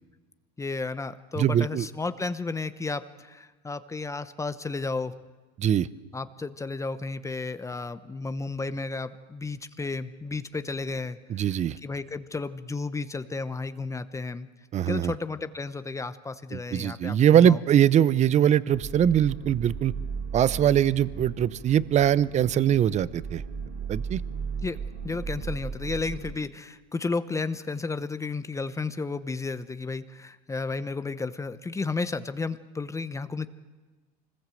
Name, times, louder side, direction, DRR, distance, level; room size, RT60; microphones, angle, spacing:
voice 1, 0.6-5.1 6.1-11.6 11.8-14.5 14.9-17.6 24.6-24.8 25.0-33.5, left 3 dB, 15° left, 11 dB, 0.9 m, -33 dB
voice 2, 1.4-1.9 5.6-5.9 11.3-11.8 14.7-15.1 16.5-19.9 20.3-23.4 23.9-24.2, right 10 dB, 35° right, 18 dB, 0.7 m, -22 dB
sound 1, 18.7-26.3, right 5 dB, 60° right, 6.7 m, -36 dB
25.5 x 20.5 x 7.8 m, 1.3 s
supercardioid pair, 105°, 21 cm